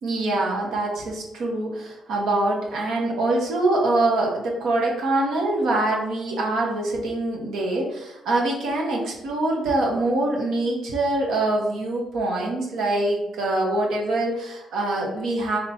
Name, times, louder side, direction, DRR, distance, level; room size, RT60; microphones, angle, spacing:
voice 1, 0.0-15.6, right 2 dB, 80° right, -2 dB, 1.1 m, -24 dB
4.0 x 3.0 x 4.1 m, 0.90 s
cardioid pair, 90°, 0 cm